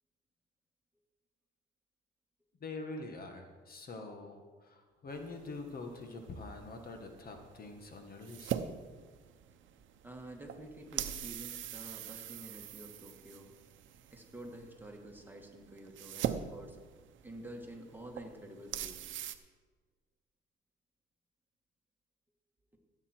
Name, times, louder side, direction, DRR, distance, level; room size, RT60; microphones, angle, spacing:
voice 1, 2.6-8.5, left 3 dB, 50° left, 4 dB, 1.6 m, -45 dB
sound 1, 5.1-19.4, right 10 dB, 75° right, 0.8 m, -43 dB
voice 2, 10.0-13.5 14.1-16.8 17.2-19.0, right 1 dB, 10° right, 1 dB, 2.1 m, -49 dB
15.5 x 8.8 x 4.6 m, 1.4 s
cardioid pair, 90°, 20 cm